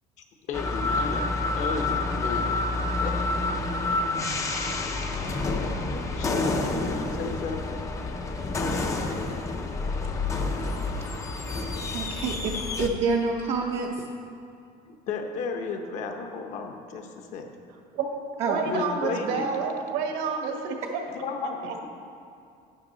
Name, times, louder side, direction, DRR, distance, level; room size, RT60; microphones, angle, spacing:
voice 1, 0.5-2.6 3.0-3.2 4.5-4.8 6.1-7.8 14.9-17.5 18.6-19.6 21.1-21.6, left 4 dB, 45° left, 4 dB, 0.9 m, -34 dB
sound 1, 0.5-12.9, left 3 dB, 15° left, 0.5 m, -28 dB
voice 2, 11.9-13.9 18.4-18.6, right 4 dB, 35° right, -1 dB, 0.6 m, -27 dB
voice 3, 18.5-21.0 21.4-21.9, right 5 dB, 70° right, 3 dB, 1.4 m, -29 dB
12.0 x 8.9 x 3.9 m, 2.4 s
cardioid pair, 175°, 18 cm